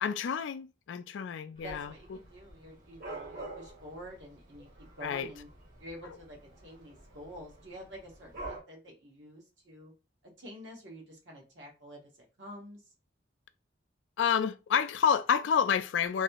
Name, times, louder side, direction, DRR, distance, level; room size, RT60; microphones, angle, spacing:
voice 1, 0.0-1.9 5.0-5.3 14.2-16.2, left 7 dB, 70° left, 0.3 m, -29 dB
Dog / Cat, 1.6-8.6, right 2 dB, 45° right, 1.1 m, -47 dB
voice 2, 1.6-5.5 5.8-9.9 10.4-12.1 12.4-12.8, equal, 65° right, 1.4 m, -48 dB
3.1 x 2.5 x 2.9 m
head